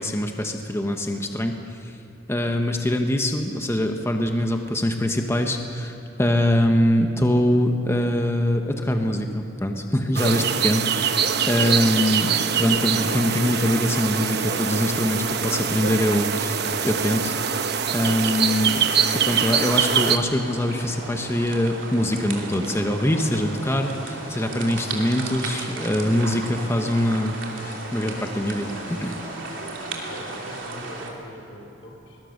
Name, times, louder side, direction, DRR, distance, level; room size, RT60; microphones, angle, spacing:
voice 1, 0.0-2.0 2.3-12.3 12.6-17.3 17.9-18.8 19.2-29.2, left 1 dB, 15° left, 4 dB, 1.1 m, -23 dB
sound 1, 10.2-20.2, right 7 dB, 60° right, 1.0 m, -24 dB
sound 2, 12.1-31.1, right 3 dB, 80° right, 3.0 m, -36 dB
sound 3, 23.2-30.7, left 2 dB, 45° left, 2.5 m, -43 dB
voice 2, 29.9-32.2, left 1 dB, 90° left, 1 dB, 4.9 m, -42 dB
21.5 x 20.5 x 6.6 m, 3.0 s
head